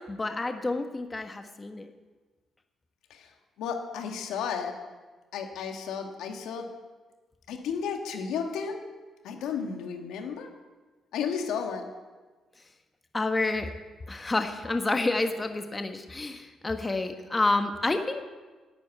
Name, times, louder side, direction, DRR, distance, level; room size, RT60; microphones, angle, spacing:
voice 1, 0.1-1.9 13.1-13.7 14.1-18.2, left 2 dB, 20° left, 6 dB, 1.2 m, -29 dB
voice 2, 3.6-4.7 5.3-6.7 7.5-8.8 9.2-10.5 11.1-11.9, left 6 dB, 85° left, 4 dB, 1.9 m, -33 dB
11.0 x 9.0 x 9.2 m, 1.3 s
cardioid pair, 90°, 0 cm